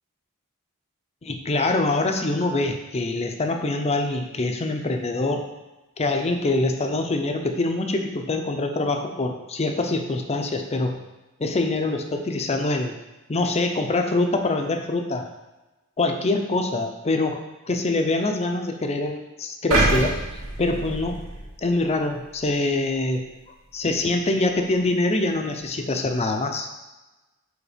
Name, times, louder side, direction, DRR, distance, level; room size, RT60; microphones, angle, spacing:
voice 1, 1.2-5.4 6.0-11.0 11.4-12.9 13.3-15.3 16.0-17.4 17.7-20.2 20.6-21.2 21.6-23.2 23.7-26.7, left 2 dB, 30° left, 5 dB, 0.6 m, -24 dB
sound 1, 19.7-21.9 22.3-22.5, right 2 dB, 70° right, 1.7 m, -25 dB
5.0 x 4.3 x 5.0 m, 1.1 s
head